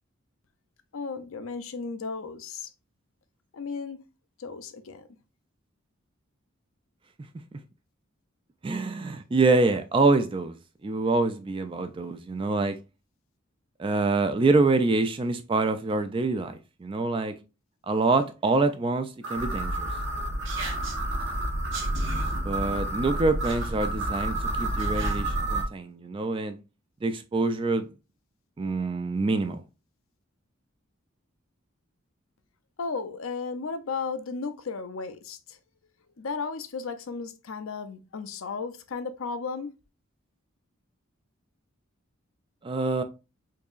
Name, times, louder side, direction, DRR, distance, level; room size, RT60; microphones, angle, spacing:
voice 1, 0.9-2.7 3.5-4.0 4.4-5.0 32.8-35.6 36.2-39.7, left 4 dB, 75° left, 0.6 m, -34 dB
voice 2, 8.6-10.6 10.8-12.8 13.8-17.3 17.9-19.9 22.4-26.6 27.0-27.9 28.6-29.6 42.6-43.0, right 3 dB, 25° right, 0.3 m, -25 dB
sound 1, 19.2-25.6, right 1 dB, 65° right, 1.1 m, -29 dB
4.6 x 2.9 x 2.4 m
head